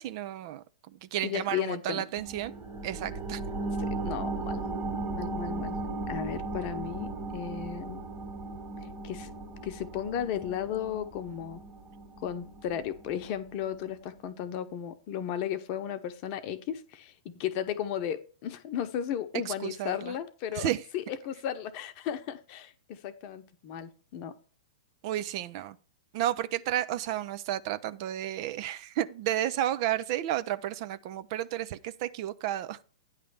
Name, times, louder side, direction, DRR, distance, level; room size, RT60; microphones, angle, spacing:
voice 1, 0.0-2.5 2.8-3.4 19.5-20.1 20.5-20.8 25.0-25.8 26.1-32.8, right 12 dB, 45° right, 0.6 m, -32 dB
voice 2, 1.2-2.1 3.8-4.7 5.1-5.8 6.1-8.1 9.0-9.3 9.6-11.6 12.2-24.3, left 9 dB, 40° left, 0.9 m, -35 dB
sound 1, 2.2-13.3 13.7-13.8, right 2 dB, 20° right, 2.1 m, -36 dB
9.7 x 3.3 x 6.8 m
figure-of-eight pair, 110°, 4 cm